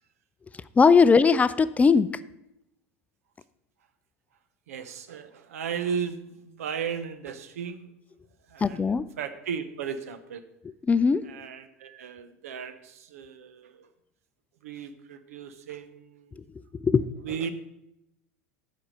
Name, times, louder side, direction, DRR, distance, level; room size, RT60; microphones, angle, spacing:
voice 1, 0.8-2.2 8.6-9.1 10.9-11.2 16.4-16.5 16.8-17.1, left 5 dB, 20° left, 15 dB, 0.4 m, -19 dB
voice 2, 4.7-7.9 8.5-10.4 11.2-13.9 14.6-16.4 17.2-17.5, right 7 dB, 75° right, 11 dB, 0.9 m, -36 dB
8.6 x 5.7 x 6.5 m, 0.83 s
hypercardioid pair, 85°, 8 cm